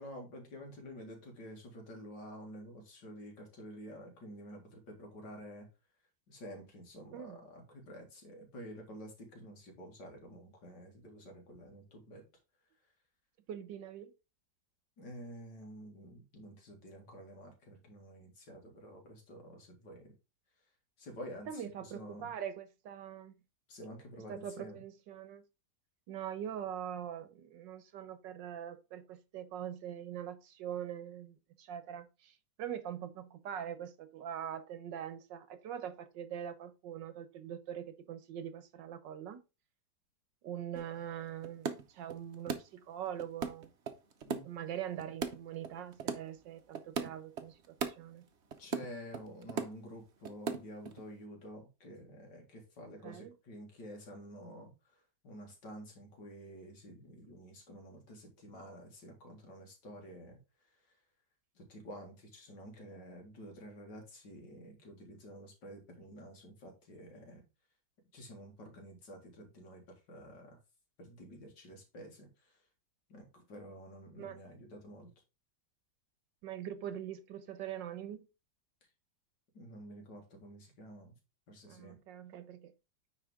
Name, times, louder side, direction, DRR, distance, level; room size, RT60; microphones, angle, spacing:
voice 1, 0.0-5.7 6.3-12.2 15.0-20.1 21.0-22.3 23.7-24.8 44.2-44.4 48.6-60.4 60.7-61.0 61.5-67.4 68.1-70.6 71.0-72.6 73.1-75.1 79.5-81.1 81.5-82.0, equal, 75° left, 2.8 m, -50 dB
voice 2, 7.1-7.4 13.5-14.1 21.5-23.3 24.3-25.4 26.1-39.4 40.4-43.7 44.4-48.3 53.0-53.3 74.2-74.4 76.4-78.2 81.6-82.7, right 9 dB, 90° right, 1.6 m, -43 dB
sound 1, 40.7-40.9 41.4-41.8 42.1-42.6 43.2-44.4 45.0-45.4 45.6-46.2 46.7-47.1 47.4-47.9 48.5-48.9 49.1-49.7 50.2-51.0, right 5 dB, 50° right, 0.9 m, -36 dB
9.6 x 4.2 x 3.7 m
omnidirectional pair, 1.9 m